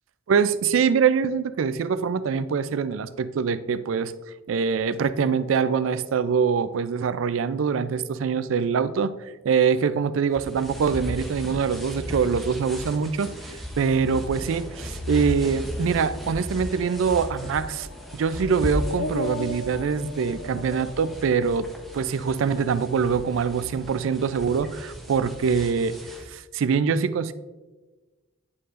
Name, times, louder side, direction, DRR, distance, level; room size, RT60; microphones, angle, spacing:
voice 1, 0.3-4.1 4.5-9.1 9.4-17.9 18.1-21.7 21.9-25.9 26.3-27.3, right 6 dB, 80° right, 14 dB, 0.4 m, -24 dB
sound 1, 10.3-26.3, equal, ahead, 0.7 m, -37 dB
sound 2, 13.7-23.6 23.9-24.6, left 2 dB, 85° left, 0.5 m, -38 dB
9.7 x 4.6 x 2.5 m, 1.2 s
head